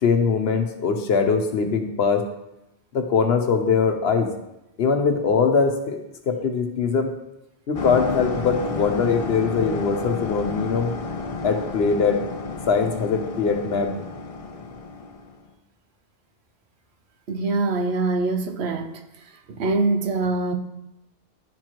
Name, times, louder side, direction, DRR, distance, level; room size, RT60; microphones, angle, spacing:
voice 1, 0.0-2.2 2.9-4.3 4.8-6.0 6.3-7.1 7.7-10.9 11.4-12.2 12.7-14.0, left 5 dB, 70° left, 5 dB, 1.0 m, -21 dB
sound 1, 7.7-15.4, left 3 dB, 45° left, 0.6 m, -31 dB
voice 2, 17.3-18.9 19.5-20.5, right 3 dB, 80° right, 5 dB, 1.0 m, -23 dB
11.5 x 4.6 x 3.0 m, 0.90 s
omnidirectional pair, 1.1 m